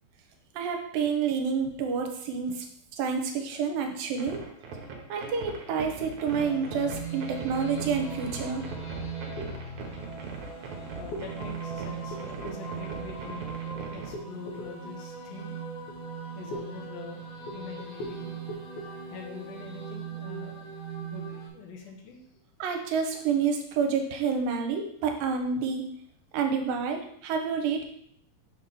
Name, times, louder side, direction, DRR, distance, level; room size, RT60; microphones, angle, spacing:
voice 1, 0.6-2.7 3.0-4.4 5.1-8.6 22.6-25.9 26.3-27.8, right 6 dB, 85° right, 4 dB, 2.3 m, -29 dB
sound 1, 4.2-14.1, right 4 dB, 70° right, 2.0 m, -41 dB
sound 2, 6.2-21.5, right 5 dB, 65° left, 3.1 m, -39 dB
voice 2, 10.9-16.0 16.4-20.7 21.0-22.2, left 3 dB, 85° left, -1 dB, 2.9 m, -42 dB
6.3 x 3.0 x 5.4 m, 0.68 s
omnidirectional pair, 4.1 m